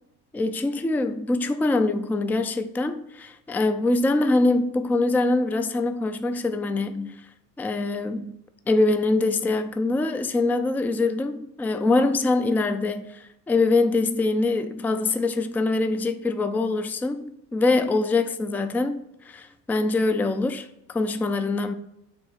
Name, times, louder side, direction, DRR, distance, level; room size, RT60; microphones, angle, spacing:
voice 1, 0.3-7.2 7.6-8.3 8.7-21.7, left 2 dB, 5° left, 0.3 m, -24 dB
6.1 x 3.6 x 5.7 m
supercardioid pair, 100°, 37 cm